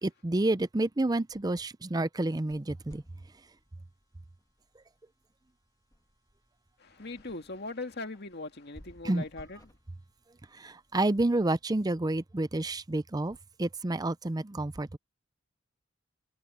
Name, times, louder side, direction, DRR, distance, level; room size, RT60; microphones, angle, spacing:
voice 1, 0.0-3.0 4.8-4.9 9.0-9.2 10.5-15.0, right 2 dB, 20° right, 0.5 m, -29 dB
sound 1, 2.2-11.6, equal, 20° left, 1.5 m, -59 dB
voice 2, 6.8-9.6, left 2 dB, 55° left, 2.1 m, -40 dB
head